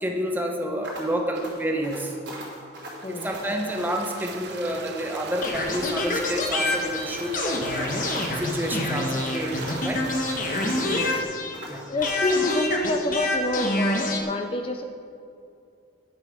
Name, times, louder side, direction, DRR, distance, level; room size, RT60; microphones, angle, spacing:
voice 1, 0.0-2.1 3.1-8.0 8.4-10.0 11.6-11.9, equal, 10° right, 2 dB, 0.8 m, -29 dB
sound 1, 0.8-12.8, right 1 dB, 85° right, 2.8 m, -42 dB
sound 2, 2.9-11.2, right 4 dB, 70° right, 0.7 m, -39 dB
sound 3, 5.4-11.7 12.0-14.2, left 2 dB, 45° left, 1.0 m, -27 dB
voice 2, 10.9-11.2 11.9-14.8, left 2 dB, 30° left, 5 dB, 0.5 m, -27 dB
11.0 x 5.6 x 6.2 m, 2.5 s
head